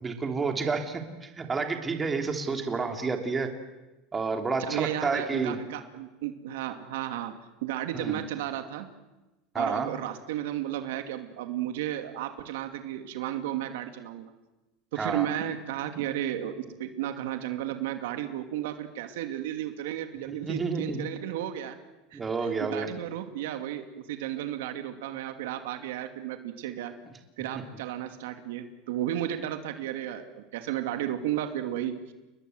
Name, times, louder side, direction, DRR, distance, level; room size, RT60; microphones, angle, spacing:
voice 1, 0.0-3.5 4.1-5.5 7.9-8.2 9.5-9.9 15.0-15.3 20.3-21.0 22.1-22.9, right 4 dB, 15° right, 5 dB, 3.1 m, -30 dB
voice 2, 4.6-8.9 9.6-14.3 14.9-21.8 22.1-22.2 22.6-26.9 27.4-32.1, right 12 dB, 85° right, 7 dB, 2.6 m, -33 dB
30.0 x 21.5 x 8.0 m, 1.1 s
supercardioid pair, 140°, 0 cm